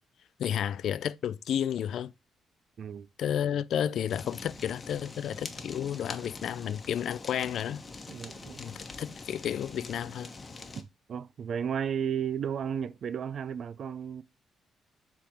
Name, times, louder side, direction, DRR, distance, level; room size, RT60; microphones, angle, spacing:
voice 1, 0.4-2.1 3.2-7.8 8.6-10.3, left 9 dB, 70° left, 0.3 m, -31 dB
Fire, 4.1-10.8, left 3 dB, 30° left, 1.1 m, -44 dB
voice 2, 8.1-8.6 10.8-10.9 11.1-14.2, right 8 dB, 60° right, 0.3 m, -33 dB
7.1 x 3.5 x 4.4 m
cardioid pair, 90°, 0 cm